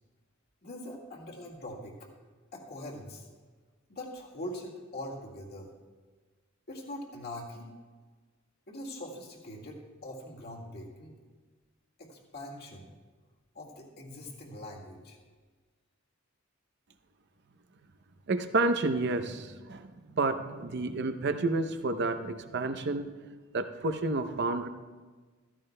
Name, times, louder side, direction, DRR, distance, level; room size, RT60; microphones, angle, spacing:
voice 1, 0.6-2.1 2.5-3.3 3.9-5.7 6.7-7.7 8.7-11.2 12.0-12.9 13.5-15.2, left 1 dB, 50° left, -1 dB, 1.9 m, -42 dB
voice 2, 18.3-23.1 23.5-24.7, right 3 dB, 55° right, 9 dB, 0.7 m, -30 dB
14.5 x 14.5 x 2.2 m, 1.4 s
head